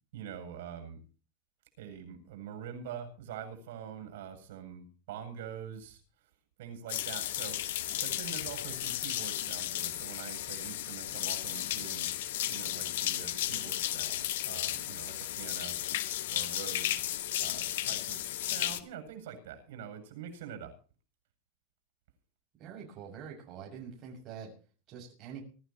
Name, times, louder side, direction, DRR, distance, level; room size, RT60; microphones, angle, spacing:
voice 1, 0.1-1.0 1.8-6.0 6.6-7.6 8.0-12.1 12.4-17.1 17.4-20.7, right 8 dB, 80° right, 7 dB, 7.9 m, -45 dB
sound 1, 6.9-18.8, left 13 dB, 90° left, 1.7 m, -34 dB
voice 2, 22.6-24.5 24.9-25.4, right 7 dB, 30° right, -1 dB, 6.7 m, -45 dB
24.5 x 14.0 x 3.1 m, 0.38 s
supercardioid pair, 170°, 0 cm